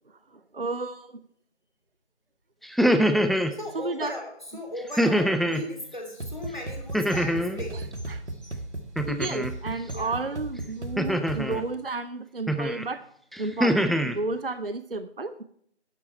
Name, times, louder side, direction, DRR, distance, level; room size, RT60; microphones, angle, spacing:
voice 1, 0.1-1.2 3.7-4.1 7.7-8.2 9.1-13.0 13.4-15.4, right 3 dB, 55° right, 13 dB, 0.6 m, -32 dB
sound 1, 2.6-3.5 5.0-5.7 6.9-7.6 9.0-9.5 11.0-11.6 12.5-12.8 13.3-14.2, equal, ahead, 0.4 m, -24 dB
voice 2, 3.5-7.8 9.9-10.1, left 1 dB, 45° left, 1 dB, 2.6 m, -37 dB
sound 2, 4.5-10.8, right 1 dB, 25° left, 2.0 m, -51 dB
sound 3, 6.2-11.8, right 2 dB, 80° right, 1.7 m, -36 dB
11.5 x 7.2 x 5.4 m, 0.64 s
figure-of-eight pair, 180°, 34 cm